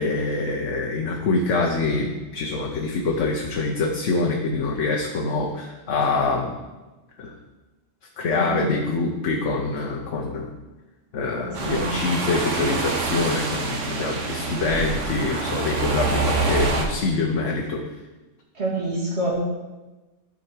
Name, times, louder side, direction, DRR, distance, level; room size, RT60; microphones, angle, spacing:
voice 1, 0.0-6.6 7.2-7.3 8.2-10.5 11.1-17.8, left 3 dB, 80° left, 0 dB, 1.2 m, -25 dB
voice 2, 8.3-8.7 11.6-11.9 18.5-19.3, right 2 dB, 60° right, -4 dB, 2.6 m, -27 dB
sound 1, 11.5-16.9, right 3 dB, 85° right, 1.4 m, -26 dB
12.5 x 5.0 x 4.5 m, 1.2 s
omnidirectional pair, 1.2 m